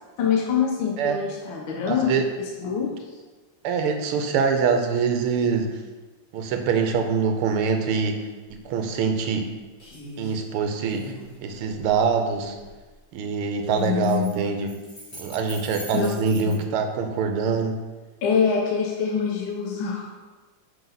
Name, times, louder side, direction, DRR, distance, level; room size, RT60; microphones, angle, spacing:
voice 1, 0.2-2.1 2.4-2.9 4.1-4.3 13.8-14.3 15.9-16.1 16.5-16.6 18.2-20.1, left 7 dB, 70° left, -1 dB, 1.5 m, -25 dB
voice 2, 1.9-2.2 3.6-5.7 6.3-8.2 8.5-9.5 10.2-11.1 11.4-12.5 13.1-14.8 15.1-17.8, right 5 dB, 80° right, 5 dB, 1.6 m, -24 dB
sound 1, 8.5-8.6 9.0-9.5 9.8-10.4 10.8-12.8 13.6-16.6, equal, 45° left, 2.2 m, -43 dB
6.2 x 5.4 x 3.9 m, 1.3 s
omnidirectional pair, 2.4 m